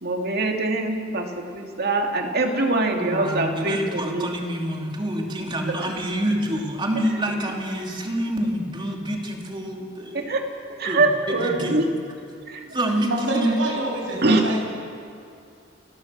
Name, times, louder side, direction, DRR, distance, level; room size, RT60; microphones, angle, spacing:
voice 1, 0.0-1.3 1.5-4.3 10.1-10.4 10.8-11.8 12.5-12.6 14.2-14.5, right 2 dB, 55° right, 2 dB, 2.5 m, -23 dB
voice 2, 3.0-10.3 10.8-11.8 12.7-13.6, right 1 dB, 25° right, 1 dB, 2.8 m, -27 dB
voice 3, 13.1-14.6, right 2 dB, 75° right, -1 dB, 6.6 m, -27 dB
29.5 x 12.5 x 7.4 m, 2.5 s
head